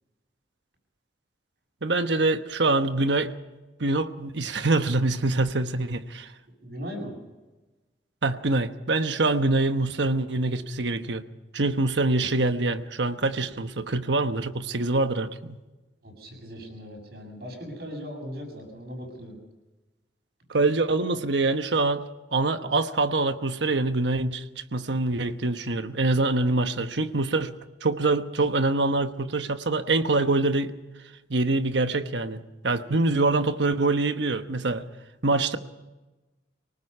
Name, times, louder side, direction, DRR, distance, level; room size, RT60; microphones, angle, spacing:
voice 1, 1.8-3.3 3.8-6.3 8.2-11.2 11.5-15.6 20.5-22.0 22.3-27.5 27.8-30.7 31.3-34.8 35.2-35.6, right 2 dB, 85° right, 9 dB, 1.1 m, -25 dB
voice 2, 6.6-7.1 16.0-19.4, equal, 60° right, 2 dB, 7.4 m, -38 dB
24.5 x 19.0 x 5.6 m, 1.1 s
head